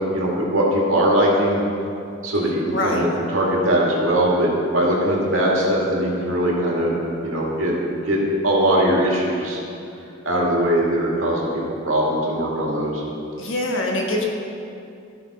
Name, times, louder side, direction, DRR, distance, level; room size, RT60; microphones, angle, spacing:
voice 1, 0.1-1.6 2.2-3.1 3.3-7.7 8.1-8.2 8.4-9.6 10.2-13.0, right 1 dB, 90° right, -3 dB, 2.1 m, -20 dB
voice 2, 2.7-3.0 13.4-14.2, left 1 dB, 65° left, 0 dB, 1.4 m, -24 dB
14.0 x 5.3 x 4.2 m, 2.6 s
head